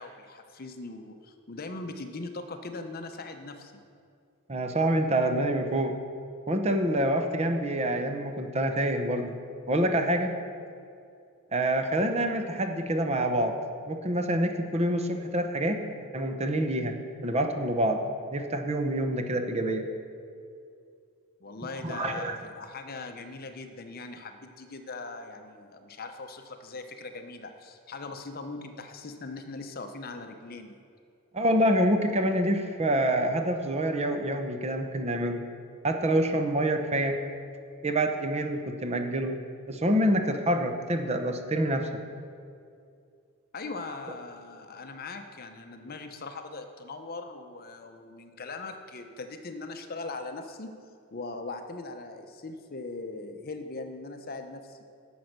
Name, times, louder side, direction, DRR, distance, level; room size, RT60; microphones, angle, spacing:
voice 1, 0.0-3.8 21.4-30.7 43.5-50.8 51.1-54.8, left 3 dB, 45° left, 7 dB, 0.7 m, -40 dB
voice 2, 4.5-5.9 6.5-9.4 9.7-10.3 11.5-13.5 13.9-15.8 16.1-17.0 17.2-18.0 18.3-19.8 21.8-22.4 31.3-35.4 35.8-37.2 37.8-39.4 39.7-41.9, right 1 dB, 30° right, 5 dB, 0.8 m, -26 dB
10.5 x 7.0 x 6.6 m, 2.4 s
head